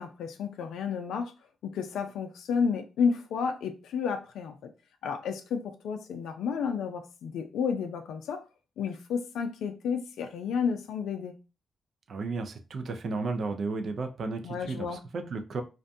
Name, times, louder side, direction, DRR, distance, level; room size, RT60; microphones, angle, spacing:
voice 1, 0.0-1.3 1.6-4.7 5.0-8.4 8.8-11.3 14.4-15.0, left 6 dB, 80° left, 0.4 m, -31 dB
voice 2, 12.1-15.6, right 3 dB, 60° right, 0.5 m, -33 dB
2.5 x 2.2 x 2.6 m
supercardioid pair, 50°, 0 cm